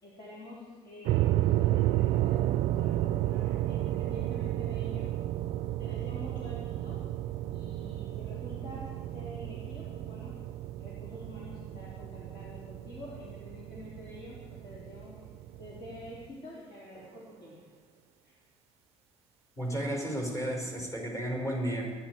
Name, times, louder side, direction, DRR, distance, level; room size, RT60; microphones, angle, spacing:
voice 1, 0.0-5.1 5.8-7.0 7.5-10.3 10.8-15.2 15.6-17.6 18.2-18.4, left 1 dB, 55° left, -6 dB, 3.9 m, -47 dB
sound 1, 1.0-16.3, right 14 dB, 90° right, 0.4 m, -32 dB
voice 2, 19.6-21.9, right 1 dB, 30° left, -1 dB, 4.8 m, -33 dB
28.5 x 10.5 x 4.7 m, 1.5 s
cardioid pair, 150°, 10 cm